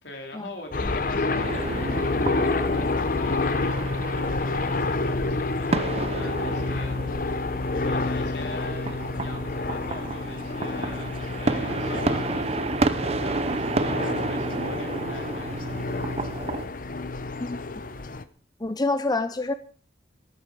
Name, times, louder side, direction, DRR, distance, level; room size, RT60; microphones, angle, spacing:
voice 1, 0.0-7.4 7.7-16.0, left 2 dB, 80° left, 3 dB, 3.5 m, -43 dB
sound 1, 0.7-18.2, left 3 dB, 50° left, 0.9 m, -29 dB
sound 2, 1.3-16.7, right 3 dB, 35° right, 0.7 m, -31 dB
voice 2, 18.6-19.5, left 2 dB, 20° left, 11 dB, 0.6 m, -26 dB
13.5 x 11.5 x 5.3 m, 0.43 s
head